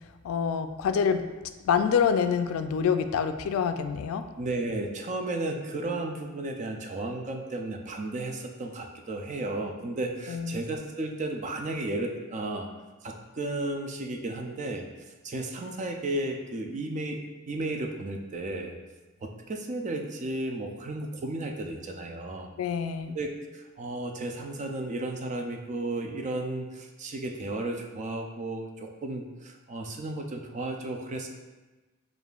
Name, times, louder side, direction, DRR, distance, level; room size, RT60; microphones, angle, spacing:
voice 1, 0.2-1.3 1.6-4.2 10.3-10.6 22.6-23.2, left 7 dB, 85° left, 9 dB, 0.3 m, -26 dB
voice 2, 4.4-12.7 13.0-14.9 15.2-18.7 19.2-22.5 23.1-31.3, right 2 dB, 35° right, 3 dB, 0.4 m, -34 dB
6.7 x 2.5 x 2.3 m, 1.2 s
head